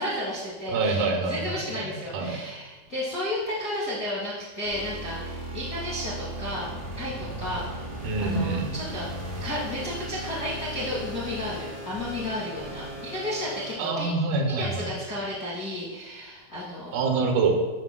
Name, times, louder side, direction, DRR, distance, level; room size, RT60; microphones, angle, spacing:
voice 1, 0.0-7.8 8.2-9.1 9.4-14.1 14.4-16.9, left 1 dB, 50° left, -6 dB, 0.9 m, -33 dB
voice 2, 0.7-2.4 8.0-8.7 13.8-14.9 16.9-17.7, right 3 dB, 85° right, 2 dB, 2.7 m, -26 dB
sound 1, 4.7-13.7, right 1 dB, 55° right, 2.8 m, -37 dB
9.6 x 5.8 x 2.2 m, 1.2 s
omnidirectional pair, 4.2 m